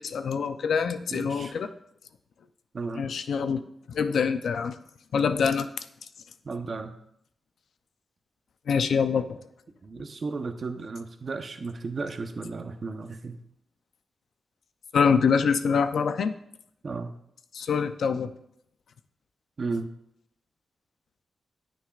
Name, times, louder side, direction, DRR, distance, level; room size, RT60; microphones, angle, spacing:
voice 1, 0.0-1.7 2.9-4.7 5.1-5.8 8.7-9.4 14.9-16.3 17.5-18.3, left 6 dB, 80° left, 10 dB, 0.6 m, -25 dB
voice 2, 1.1-1.5 2.7-3.1 6.4-6.9 9.8-13.4 16.8-17.2 19.6-19.9, right 3 dB, 55° right, 6 dB, 1.0 m, -34 dB
16.0 x 6.3 x 2.5 m, 0.74 s
cardioid pair, 65°, 0 cm